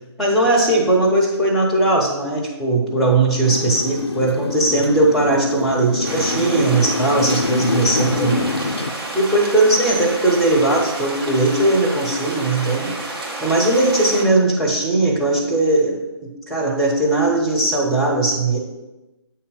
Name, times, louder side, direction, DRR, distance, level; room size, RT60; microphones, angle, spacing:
voice 1, 0.2-8.4 9.1-12.9 13.4-16.0 16.5-18.6, right 2 dB, ahead, -4 dB, 0.7 m, -18 dB
Motorcycle, 3.4-8.9, left 3 dB, 65° left, 0.5 m, -25 dB
sound 1, 6.0-14.2, right 2 dB, 55° right, 1.6 m, -30 dB
8.2 x 2.8 x 5.2 m, 1.0 s
figure-of-eight pair, 150°, 15 cm